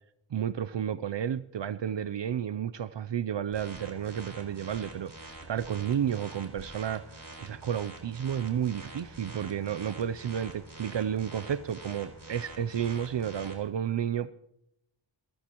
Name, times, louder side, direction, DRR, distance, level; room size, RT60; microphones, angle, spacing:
voice 1, 0.3-5.1 5.5-14.3, right 9 dB, 65° right, 15 dB, 0.6 m, -32 dB
sound 1, 3.5-13.5, right 2 dB, 45° right, 3.9 m, -46 dB
30.0 x 14.5 x 3.0 m, 0.82 s
wide cardioid pair, 50°, 47 cm